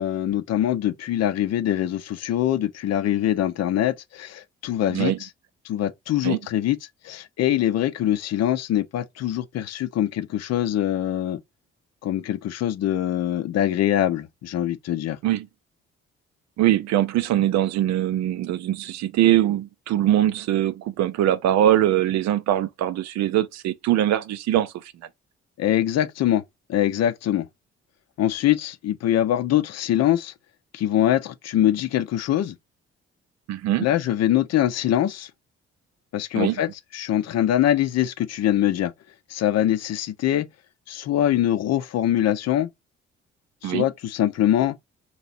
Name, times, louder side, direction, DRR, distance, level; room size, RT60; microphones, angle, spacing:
voice 1, 0.0-5.3 5.6-6.8 7.0-11.4 12.0-15.2 25.6-26.4 26.7-27.5 28.2-30.3 30.7-32.5 33.8-35.3 36.1-38.9 39.3-40.5 40.9-42.7 43.6-44.8, left 12 dB, 55° left, 0.6 m, -23 dB
voice 2, 16.6-24.7 33.5-33.9 36.3-36.6 43.6-43.9, right 12 dB, 60° right, 0.5 m, -22 dB
3.0 x 2.8 x 4.0 m
hypercardioid pair, 50°, 30 cm